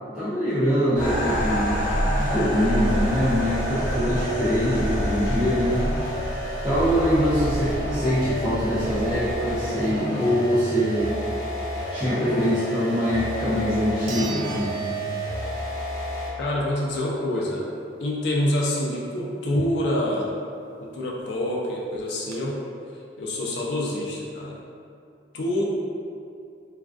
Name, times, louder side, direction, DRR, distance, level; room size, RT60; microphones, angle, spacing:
voice 1, 0.0-1.9 2.2-5.9 6.6-11.1 11.9-14.7, equal, 5° right, -15 dB, 0.5 m, -23 dB
sound 1, 1.0-9.9, equal, 40° left, 0.9 m, -29 dB
sound 2, 1.0-16.4, equal, 40° right, 0.7 m, -31 dB
sound 3, 14.1-15.8 16.2-16.3 20.9-21.0 21.2-21.3 21.9-22.4, right 4 dB, 80° right, 0.4 m, -39 dB
voice 2, 16.4-17.6 18.0-20.3 20.8-22.6 23.2-24.6 25.3-25.7, left 1 dB, 65° left, -3 dB, 0.4 m, -26 dB
2.3 x 2.2 x 2.4 m, 2.4 s
head